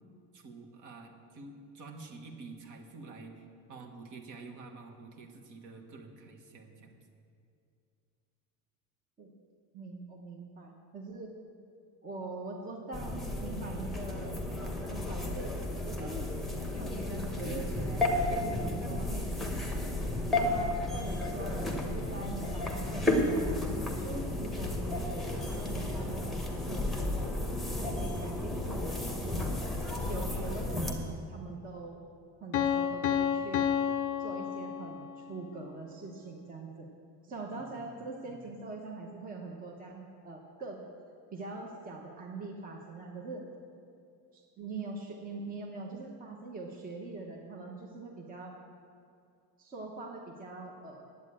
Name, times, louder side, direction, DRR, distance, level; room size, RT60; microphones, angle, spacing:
voice 1, 0.3-3.4 3.7-7.0 37.5-37.9 38.2-38.3, right 3 dB, 50° right, 3 dB, 1.6 m, -48 dB
voice 2, 9.7-11.3 12.0-16.3 16.7-19.4 20.3-23.6 24.0-27.2 27.8-29.4 30.0-32.0 32.4-33.7 34.2-36.9 37.2-40.8 41.3-43.4 44.3-48.6 49.6-51.0, right 3 dB, 20° right, 1 dB, 1.0 m, -43 dB
sound 1, 12.9-30.9, left 1 dB, ahead, 1.2 m, -33 dB
Piano, 32.5-35.3, left 8 dB, 35° left, 0.5 m, -30 dB
10.5 x 8.5 x 8.8 m, 2.4 s
cardioid pair, 170°, 39 cm